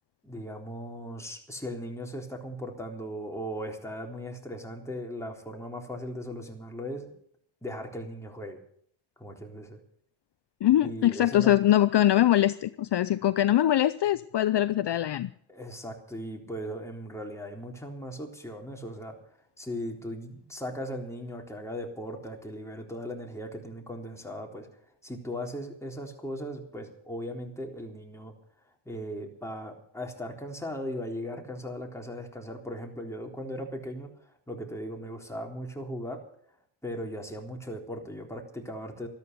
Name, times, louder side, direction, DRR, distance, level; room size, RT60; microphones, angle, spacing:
voice 1, 0.2-7.1 7.6-8.6 9.2-9.8 10.8-11.5 15.5-19.2 19.6-24.7 25.0-28.3 28.9-34.1 34.5-36.2 36.8-39.1, equal, 5° left, 3.7 m, -38 dB
voice 2, 10.6-15.3, left 12 dB, 55° left, 0.6 m, -23 dB
13.5 x 13.0 x 6.8 m
cardioid pair, 85°, 49 cm